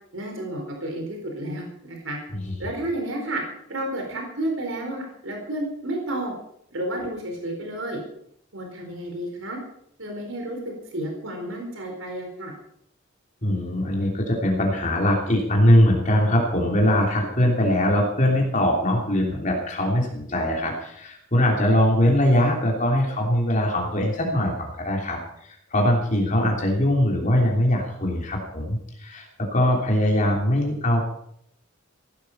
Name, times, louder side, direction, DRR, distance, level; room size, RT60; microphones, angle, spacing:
voice 1, 0.1-2.2 2.6-3.4 3.7-6.3 6.7-8.0 8.5-9.6 10.0-12.5, right 1 dB, 85° right, 2 dB, 4.3 m, -31 dB
voice 2, 13.4-31.1, left 1 dB, 40° left, 0 dB, 3.2 m, -22 dB
16.5 x 12.5 x 5.5 m, 0.69 s
head